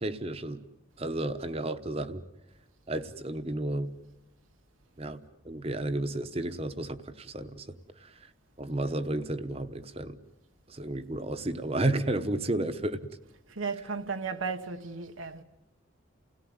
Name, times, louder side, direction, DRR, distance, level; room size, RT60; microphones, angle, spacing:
voice 1, 0.0-0.6 1.0-2.2 2.9-3.9 5.0-7.6 8.6-10.2 10.7-13.0, right 1 dB, 30° right, 1.0 m, -32 dB
voice 2, 13.5-15.4, right 4 dB, 90° right, 1.4 m, -35 dB
29.0 x 17.5 x 9.5 m
head